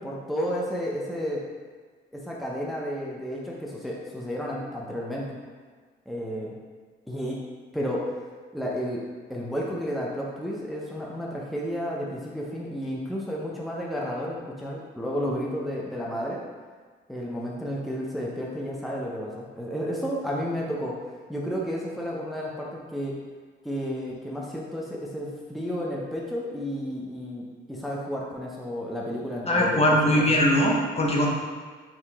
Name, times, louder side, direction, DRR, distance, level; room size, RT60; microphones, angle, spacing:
voice 1, 0.0-1.4 2.1-5.3 6.1-6.5 7.1-7.4 7.7-8.2 8.5-9.0 9.3-16.4 17.1-21.0 21.3-23.1 23.6-30.4, equal, ahead, -4 dB, 0.7 m, -32 dB
voice 2, 29.5-31.3, equal, 30° left, -2 dB, 0.8 m, -21 dB
4.7 x 2.9 x 3.5 m, 1.5 s
cardioid pair, 90°, 20 cm